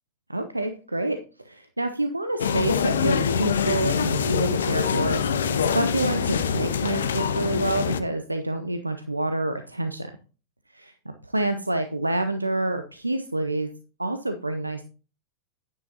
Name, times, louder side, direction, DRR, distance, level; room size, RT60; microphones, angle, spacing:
voice 1, 0.3-10.1 10.7-13.7 14.0-14.8, right 2 dB, 85° right, 8 dB, 0.6 m, -28 dB
sound 1, 2.4-8.0, left 7 dB, 65° left, 0.7 m, -24 dB
9.8 x 9.4 x 2.8 m, 0.36 s
figure-of-eight pair, 90°, 0 cm